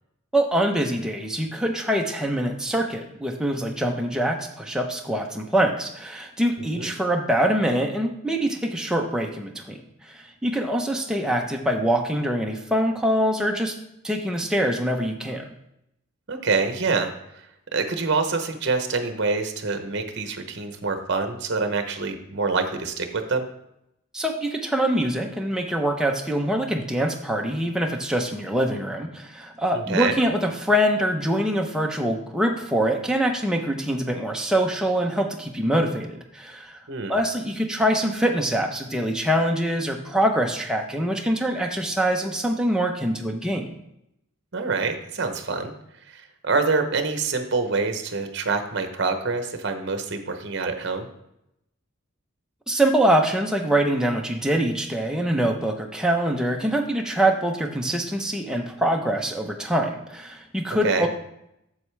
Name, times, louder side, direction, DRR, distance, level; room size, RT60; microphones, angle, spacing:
voice 1, 0.3-9.8 10.1-13.8 14.0-15.4 24.1-36.8 37.1-43.7 52.7-61.1, right 1 dB, 5° right, 1 dB, 0.6 m, -24 dB
voice 2, 6.6-6.9 16.3-17.1 17.7-23.5 29.7-30.2 36.9-37.1 44.5-45.7 46.1-51.1 60.8-61.1, right 4 dB, 55° right, 7 dB, 0.8 m, -26 dB
7.8 x 7.2 x 3.3 m, 0.82 s
head